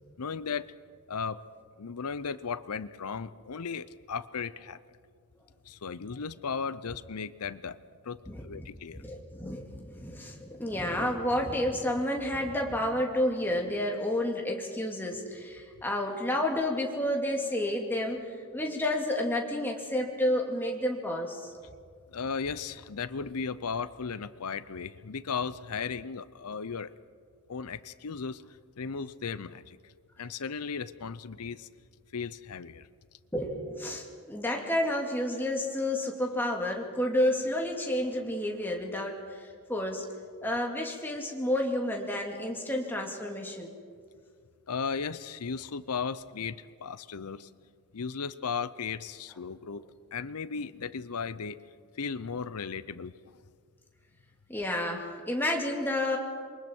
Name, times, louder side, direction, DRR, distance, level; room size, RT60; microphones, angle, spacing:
voice 1, 0.2-0.7 1.1-1.4 1.8-4.8 5.7-7.8 8.0-9.0 22.1-26.9 27.5-28.4 28.8-29.8 30.2-31.7 32.1-32.9 44.7-47.5 47.9-51.6 52.0-53.4, left 5 dB, 80° left, 15 dB, 0.7 m, -36 dB
voice 2, 8.3-8.6 8.9-18.3 18.5-21.5 33.3-40.1 40.4-43.7 54.5-56.2, left 1 dB, 10° left, 0 dB, 2.3 m, -30 dB
27.5 x 23.0 x 4.5 m, 2.1 s
head